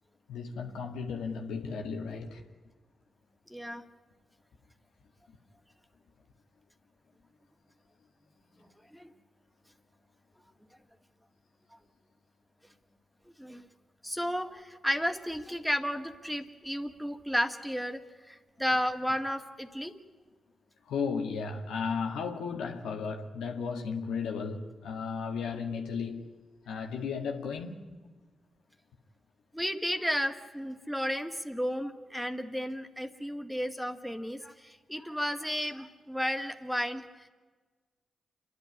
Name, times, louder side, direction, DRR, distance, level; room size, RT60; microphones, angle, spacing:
voice 1, 0.3-2.4 20.9-26.3 26.7-27.9, left 5 dB, 90° left, 1.9 m, -34 dB
voice 2, 3.5-3.8 8.6-9.1 11.7-11.8 13.4-13.7 14.0-19.9 29.5-37.3, equal, ahead, 2.1 m, -33 dB
28.0 x 11.5 x 9.8 m
supercardioid pair, 50°, 0 cm